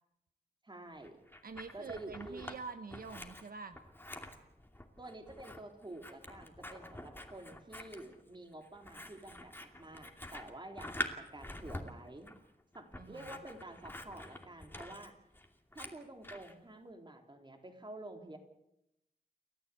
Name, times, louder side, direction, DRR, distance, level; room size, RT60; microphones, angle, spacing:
voice 1, 0.6-1.2 1.7-2.5 5.0-12.4 12.7-15.2 15.7-18.4, right 2 dB, 30° right, 4 dB, 3.6 m, -49 dB
Scissors, 1.0-2.6 2.9-16.5, left 1 dB, 15° left, 2.6 m, -46 dB
voice 2, 1.4-3.8 13.0-13.3, right 4 dB, 65° right, 9 dB, 1.0 m, -46 dB
29.5 x 13.5 x 8.5 m, 0.86 s
wide cardioid pair, 95°, 16 cm